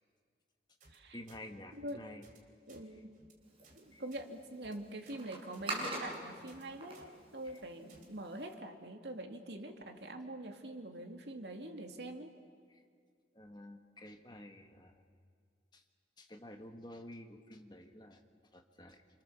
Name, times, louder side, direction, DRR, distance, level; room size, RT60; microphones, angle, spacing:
sound 1, 0.8-1.0 1.3-1.4 1.7-1.9 2.2-2.4 2.7-2.8 3.1-3.3 3.6-3.8 4.1-4.2 4.6-4.7 5.0-5.2 5.5-5.7 6.0-6.2 6.5-6.6 6.9-7.1 7.4-7.6 7.9-8.1, right 3 dB, 50° right, 3.7 m, -61 dB
voice 1, 1.1-2.2 3.9-4.0 7.4-7.6 12.7-12.8 13.3-15.0 15.7-15.8 16.2-18.2 18.5-19.0, left 1 dB, 25° left, 4 dB, 1.7 m, -51 dB
voice 2, 1.7-2.1 2.7-3.2 3.8-12.3, right 1 dB, 75° right, 4 dB, 2.4 m, -45 dB
sound 2, 3.4-8.5, right 1 dB, 30° right, 7.0 m, -45 dB
29.5 x 27.0 x 7.2 m, 2.1 s
head